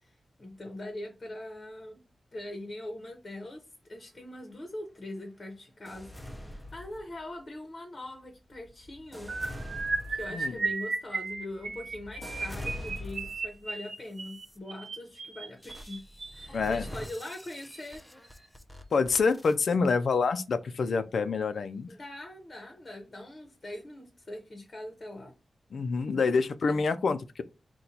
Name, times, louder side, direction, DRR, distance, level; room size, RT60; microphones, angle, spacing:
voice 1, 0.0-2.0 2.3-9.4 10.1-16.0 16.3-18.0 21.9-25.3 26.3-26.8, left 1 dB, 35° left, 0.8 m, -42 dB
sound 1, 5.9-7.4 8.1-13.6 14.2-14.6 15.6-19.6, left 1 dB, 5° left, 0.5 m, -44 dB
sound 2, 9.3-16.5 17.2-17.5 17.7-18.0 18.2-18.4, right 4 dB, 60° right, 0.7 m, -35 dB
voice 2, 16.5-16.9 18.9-21.9 25.7-27.4, left 4 dB, 70° left, 0.4 m, -27 dB
3.9 x 2.2 x 4.3 m
wide cardioid pair, 145°, 0 cm